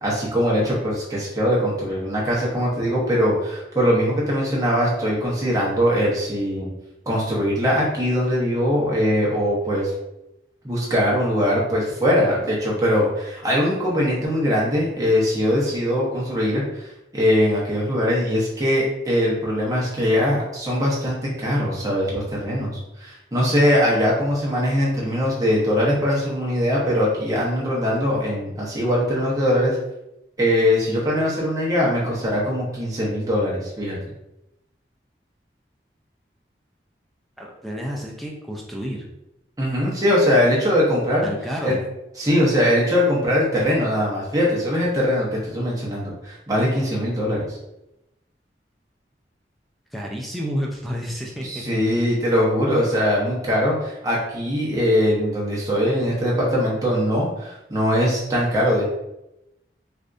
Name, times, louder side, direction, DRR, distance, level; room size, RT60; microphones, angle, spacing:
voice 1, 0.0-6.7 7.1-9.9 10.6-29.8 30.4-34.0 39.6-41.3 41.6-41.7 42.2-47.6 51.4-58.8, equal, 20° right, -5 dB, 0.8 m, -21 dB
voice 2, 37.4-39.1 41.2-41.8 49.9-51.8, equal, ahead, -2 dB, 0.4 m, -30 dB
3.4 x 2.5 x 2.5 m, 0.89 s
head